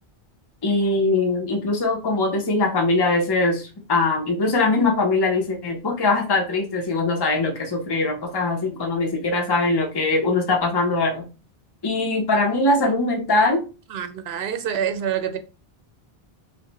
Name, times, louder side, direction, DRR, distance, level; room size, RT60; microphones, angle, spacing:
voice 1, 0.6-11.3 11.8-13.6, left 3 dB, 25° left, 0.7 m, -21 dB
voice 2, 13.9-15.4, right 8 dB, 80° right, 0.8 m, -26 dB
3.2 x 2.1 x 3.9 m
omnidirectional pair, 1.0 m